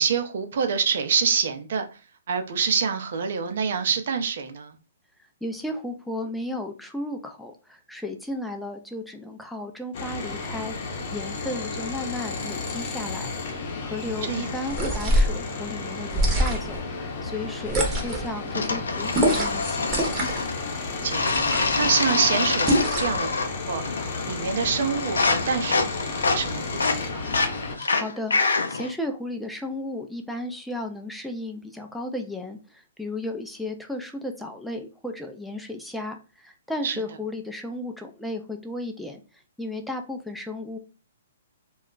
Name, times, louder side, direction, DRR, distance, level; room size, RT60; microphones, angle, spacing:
voice 1, 0.0-1.8 2.3-4.8 14.2-14.5 20.7-21.3 21.8-23.3 23.7-23.8 24.2-27.3 36.8-37.0, right 6 dB, 60° right, 0.5 m, -26 dB
voice 2, 5.4-10.7 11.1-13.3 13.8-20.0 27.9-39.2 39.6-40.8, left 1 dB, ahead, 0.4 m, -34 dB
sound 1, 9.9-27.7, left 3 dB, 50° left, 0.8 m, -33 dB
sound 2, 14.7-15.4 16.1-16.8 17.7-18.3 19.1-19.6 19.9-20.5 21.2-21.8 22.7-23.2, right 1 dB, 20° right, 0.8 m, -24 dB
sound 3, 18.5-20.6 21.1-23.6 23.8-24.3 24.6-28.9, left 4 dB, 85° left, 0.5 m, -26 dB
2.3 x 2.1 x 3.7 m
hypercardioid pair, 140°, 0 cm